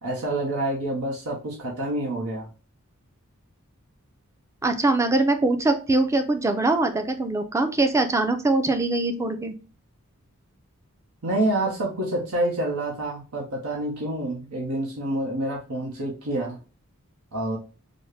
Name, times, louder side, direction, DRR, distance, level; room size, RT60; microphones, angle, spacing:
voice 1, 0.0-2.5 11.2-16.6 17.3-17.6, right 1 dB, 90° right, -2 dB, 0.9 m, -27 dB
voice 2, 4.6-9.5, right 2 dB, 15° right, 6 dB, 0.4 m, -22 dB
4.1 x 2.1 x 3.2 m, 0.34 s
head